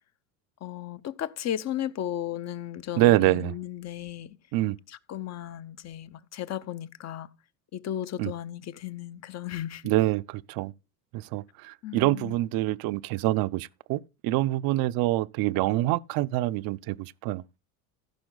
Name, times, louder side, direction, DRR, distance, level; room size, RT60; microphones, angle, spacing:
voice 1, 0.6-4.4 4.9-7.3 7.7-9.9 11.8-12.3, left 11 dB, 35° left, 0.8 m, -35 dB
voice 2, 3.0-3.5 4.5-4.8 8.2-8.3 9.8-10.7 11.1-17.4, right 17 dB, 50° right, 0.7 m, -26 dB
15.5 x 5.9 x 3.9 m
supercardioid pair, 95°, 45 cm